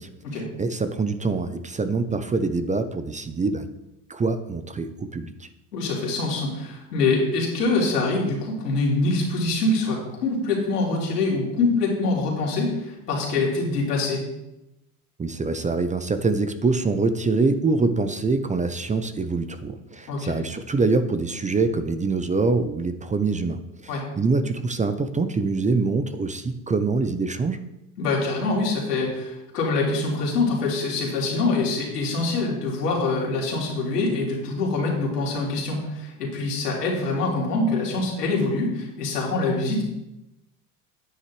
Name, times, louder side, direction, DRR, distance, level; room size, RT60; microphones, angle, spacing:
voice 1, 0.0-3.7 4.1-5.5 15.2-27.6, right 3 dB, 15° right, 10 dB, 0.7 m, -25 dB
voice 2, 5.7-14.2 20.1-20.4 23.9-24.0 28.0-39.8, left 3 dB, 85° left, -2 dB, 3.3 m, -24 dB
9.9 x 9.4 x 3.2 m, 0.90 s
hypercardioid pair, 80°, 46 cm